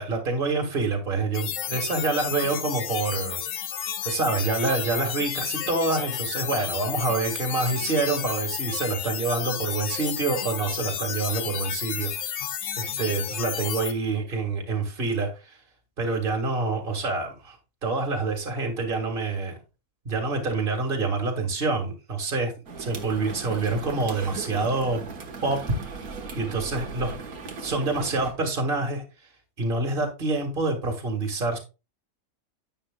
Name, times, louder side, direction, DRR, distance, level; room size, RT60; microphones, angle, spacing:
voice 1, 0.0-3.4 4.0-12.4 12.8-15.6 16.0-17.6 17.8-19.6 20.1-22.5 22.8-25.0 25.4-25.6 26.3-27.2 27.6-29.0 29.6-31.6, right 3 dB, 35° right, 3 dB, 2.1 m, -27 dB
sound 1, 1.3-13.9, left 9 dB, 60° left, 1.1 m, -32 dB
sound 2, 22.7-28.3, right 4 dB, 85° right, 1.9 m, -38 dB
10.0 x 8.9 x 2.3 m, 0.29 s
omnidirectional pair, 1.5 m